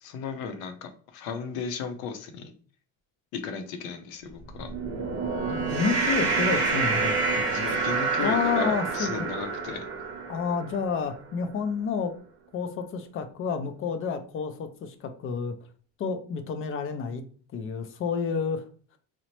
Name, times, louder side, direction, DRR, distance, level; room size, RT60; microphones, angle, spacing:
voice 1, 0.0-2.5 3.3-4.7 7.5-9.9, left 6 dB, 85° left, 8 dB, 0.6 m, -35 dB
sound 1, 4.5-11.0, right 4 dB, 50° right, 0.8 m, -28 dB
voice 2, 5.5-7.1 7.5-7.7 8.2-9.3 10.3-12.1 12.5-15.5 16.0-17.2 17.5-18.7, left 5 dB, 40° left, 8 dB, 0.4 m, -29 dB
2.8 x 2.0 x 2.9 m, 0.43 s
cardioid pair, 110°, 35 cm